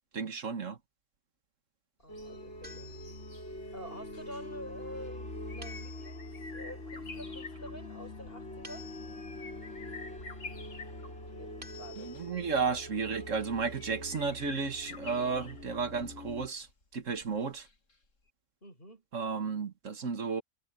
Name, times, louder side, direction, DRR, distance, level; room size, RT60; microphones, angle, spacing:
voice 1, 0.1-0.8 12.0-16.7 16.9-17.7 19.1-20.4, right 5 dB, 90° right, 2.0 m, -33 dB
sound 1, 2.0-18.0 18.3-18.4, left 3 dB, 90° left, 2.8 m, -51 dB
voice 2, 2.0-2.9 3.7-8.9 11.3-12.1 18.6-19.0, equal, 50° left, 6.5 m, -48 dB
sound 2, 2.1-16.5, left 1 dB, 65° left, 5.0 m, -44 dB
sound 3, 2.6-3.6 5.6-6.5 8.6-9.5 11.6-12.5, left 2 dB, 55° right, 4.6 m, -52 dB
omnidirectional pair, 1.3 m